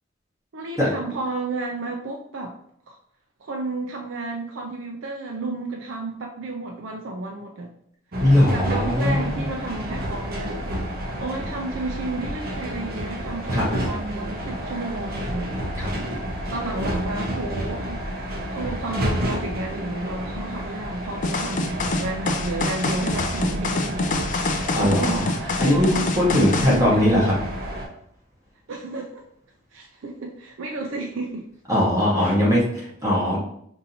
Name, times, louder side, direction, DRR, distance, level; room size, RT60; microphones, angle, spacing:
voice 1, 0.5-2.6 2.9-3.0 3.4-7.7 8.5-10.6 11.2-15.5 16.5-18.0 18.4-24.2 24.4-25.3 25.6-27.4 28.7-29.2 29.7-31.5 32.2-32.3, right 2 dB, 75° right, 1 dB, 0.5 m, -32 dB
sound 1, 8.1-27.9, equal, 50° right, 0.8 m, -30 dB
voice 2, 8.2-9.4 13.5-13.6 15.7-15.9 24.7-25.3 25.6-25.9 26.2-27.3 31.7-33.4, left 1 dB, 15° right, -6 dB, 1.0 m, -20 dB
sound 2, 21.2-26.8, left 3 dB, 40° left, 0.4 m, -26 dB
5.4 x 2.6 x 2.7 m, 0.70 s
head